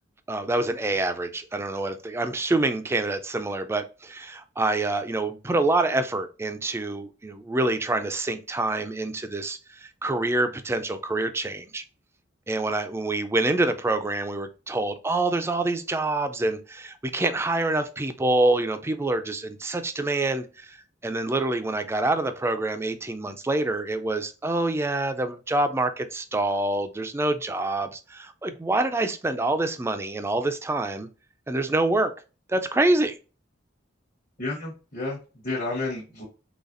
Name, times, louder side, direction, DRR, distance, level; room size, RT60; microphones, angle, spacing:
voice 1, 0.3-11.8 12.5-31.1 31.5-32.1 32.5-33.2, right 2 dB, 15° right, 0.3 m, -26 dB
voice 2, 34.4-36.2, left 2 dB, 45° left, 1.0 m, -31 dB
4.0 x 3.2 x 2.5 m
head